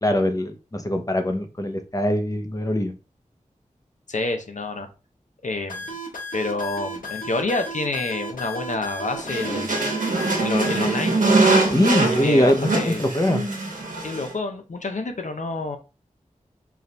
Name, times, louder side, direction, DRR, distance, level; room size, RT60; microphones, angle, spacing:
voice 1, 0.0-2.9 11.7-13.4, left 1 dB, 25° left, 6 dB, 0.9 m, -22 dB
voice 2, 4.1-4.9 5.4-5.8 6.3-9.8 10.4-11.2 12.1-13.0 14.0-15.8, left 2 dB, 65° left, 6 dB, 0.8 m, -28 dB
sound 1, 5.7-11.0, equal, 85° left, 1.1 m, -34 dB
sound 2, 9.2-14.3, right 3 dB, 75° right, 1.3 m, -22 dB
4.7 x 2.6 x 3.3 m, 0.31 s
cardioid pair, 40°, 14 cm